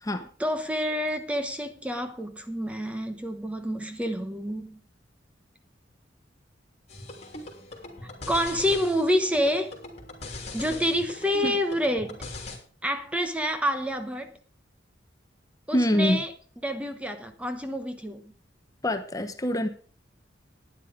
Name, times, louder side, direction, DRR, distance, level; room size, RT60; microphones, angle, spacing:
voice 1, 0.4-4.8 8.3-9.7 10.5-12.2 12.8-14.3 15.7-16.3 16.6-18.3, equal, 5° right, 1.0 m, -28 dB
sound 1, 6.9-12.6, left 2 dB, 35° left, 3.3 m, -40 dB
voice 2, 15.7-16.2 18.8-19.7, equal, 20° left, 1.0 m, -25 dB
11.5 x 9.9 x 5.1 m
head